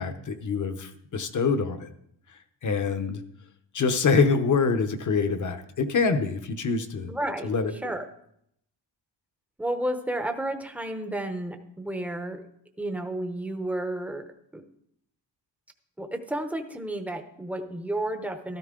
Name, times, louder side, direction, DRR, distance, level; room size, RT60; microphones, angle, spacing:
voice 1, 0.0-1.9 2.6-3.2 3.7-7.1 7.4-7.7, left 4 dB, 40° left, 8 dB, 0.9 m, -25 dB
voice 2, 7.1-8.1 9.6-12.4 12.8-14.2 14.5-14.6 16.0-18.6, right 1 dB, 5° right, 6 dB, 0.7 m, -32 dB
13.0 x 13.0 x 3.7 m, 0.73 s
wide cardioid pair, 165°, 45 cm